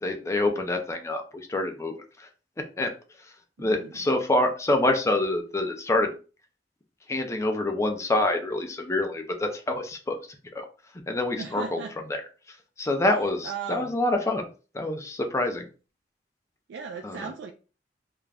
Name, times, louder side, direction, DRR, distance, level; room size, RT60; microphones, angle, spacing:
voice 1, 0.0-2.3 2.8-2.9 3.6-6.1 7.1-10.2 10.5-10.7 11.1-11.8 12.1-12.2 12.8-14.5 14.7-15.6 17.0-17.3, left 2 dB, 15° left, 4 dB, 0.4 m, -26 dB
voice 2, 3.6-4.0 11.4-11.9 13.4-13.9 16.7-17.5, right 6 dB, 80° right, 3 dB, 0.3 m, -37 dB
2.4 x 2.1 x 3.3 m, 0.35 s
head